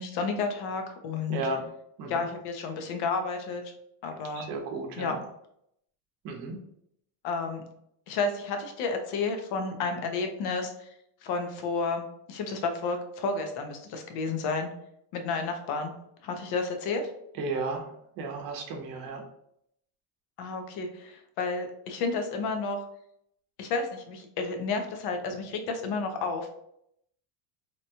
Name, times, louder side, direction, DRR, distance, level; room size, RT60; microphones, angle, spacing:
voice 1, 0.0-1.4 2.1-3.6 4.0-4.4 5.0-5.2 7.2-7.6 8.1-10.9 11.2-14.7 15.1-15.9 16.2-17.1 20.4-22.8 23.6-26.5, left 4 dB, 60° left, 6 dB, 0.7 m, -31 dB
voice 2, 1.3-1.6 2.0-2.2 4.3-5.1 6.2-6.6 17.4-17.8 18.2-19.2, right 3 dB, 50° right, 3 dB, 0.7 m, -33 dB
2.9 x 2.2 x 2.7 m, 0.74 s
cardioid pair, 135°, 45 cm